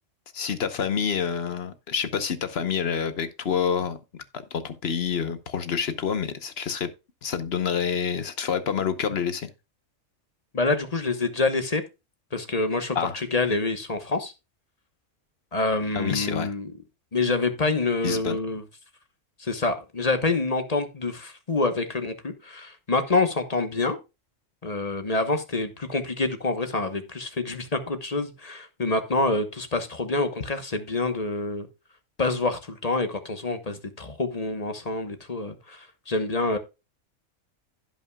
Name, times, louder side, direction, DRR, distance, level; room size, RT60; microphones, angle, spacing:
voice 1, 0.3-4.2 4.5-6.9 7.2-9.5 12.9-13.2 15.9-16.5 18.0-18.4, left 7 dB, 55° left, 1.1 m, -27 dB
voice 2, 10.5-11.8 12.3-14.3 15.5-16.7 17.1-18.6 19.4-24.0 24.6-31.7 32.2-36.6, left 3 dB, 30° left, 1.1 m, -27 dB
16.0 x 5.7 x 2.3 m
omnidirectional pair, 1.3 m